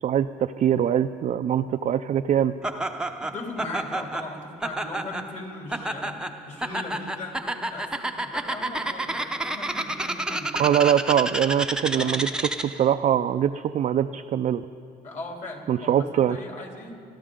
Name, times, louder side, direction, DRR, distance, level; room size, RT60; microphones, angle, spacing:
voice 1, 0.0-2.5 10.6-14.6 15.7-16.4, right 9 dB, 45° right, 6 dB, 0.4 m, -23 dB
Laughter, 2.6-12.9, right 1 dB, 5° right, 0.7 m, -30 dB
voice 2, 3.2-6.2 6.5-10.5 12.0-12.2 15.0-16.9, left 2 dB, 45° left, 0 dB, 3.3 m, -38 dB
28.5 x 12.0 x 3.8 m, 2.3 s
cardioid pair, 110°, 17 cm